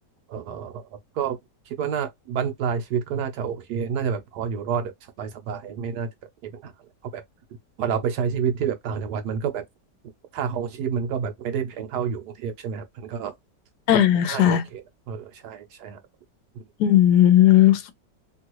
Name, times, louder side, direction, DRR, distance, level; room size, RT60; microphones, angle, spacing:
voice 1, 0.3-0.8 1.2-1.4 1.7-4.9 5.2-6.1 6.4-6.7 7.1-7.2 7.8-9.6 10.3-13.3 14.3-14.8 15.1-16.0, right 7 dB, 70° right, 1.2 m, -28 dB
voice 2, 13.9-14.6 16.8-17.9, left 12 dB, 75° left, 1.1 m, -16 dB
3.0 x 2.3 x 2.9 m
omnidirectional pair, 1.9 m